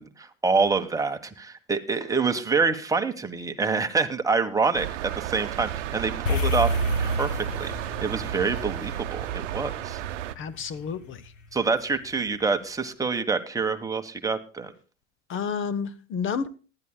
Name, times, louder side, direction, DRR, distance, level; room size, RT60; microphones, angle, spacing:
voice 1, 0.0-4.9 5.1-6.7 7.0-7.7 8.0-10.0 11.5-14.7, right 4 dB, 10° right, 1.2 m, -26 dB
sound 1, 4.7-10.3, right 12 dB, 70° right, 0.8 m, -33 dB
sound 2, 6.3-10.8, equal, 80° left, 1.6 m, -29 dB
voice 2, 10.4-11.3 15.3-16.5, left 6 dB, 35° left, 0.9 m, -30 dB
19.0 x 11.5 x 2.2 m
hypercardioid pair, 90°, 37 cm